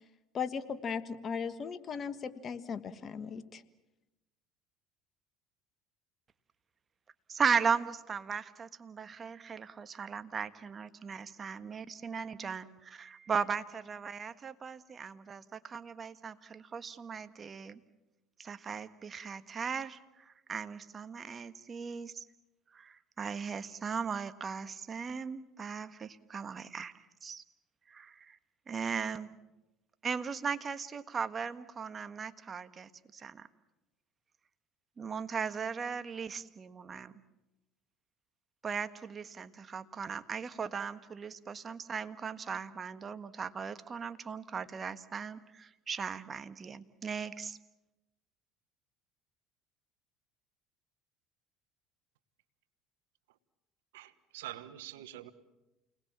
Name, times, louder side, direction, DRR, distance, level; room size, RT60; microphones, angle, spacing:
voice 1, 0.3-3.6, left 6 dB, 40° left, 12 dB, 1.5 m, -37 dB
voice 2, 7.3-17.8 18.4-22.3 22.7-27.4 27.9-28.4 28.7-29.3 30.0-33.5 35.0-37.1 38.6-47.6, right 6 dB, 35° right, 11 dB, 1.5 m, -37 dB
voice 3, 53.9-55.3, right 13 dB, 85° right, 13 dB, 1.3 m, -45 dB
29.0 x 20.5 x 7.5 m, 1.0 s
supercardioid pair, 80°, 0 cm